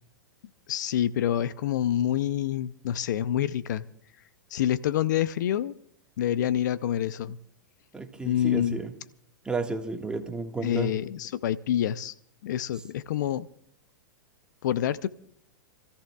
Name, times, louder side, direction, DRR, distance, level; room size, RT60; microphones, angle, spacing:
voice 1, 0.7-3.9 4.5-5.7 6.2-7.4 8.2-8.8 10.6-12.1 12.4-13.5 14.6-15.1, left 11 dB, 65° left, 16 dB, 0.6 m, -27 dB
voice 2, 7.9-8.9 9.4-10.9, right 3 dB, 10° right, 4 dB, 1.6 m, -32 dB
29.0 x 14.5 x 2.3 m, 0.68 s
hypercardioid pair, 110°, 10 cm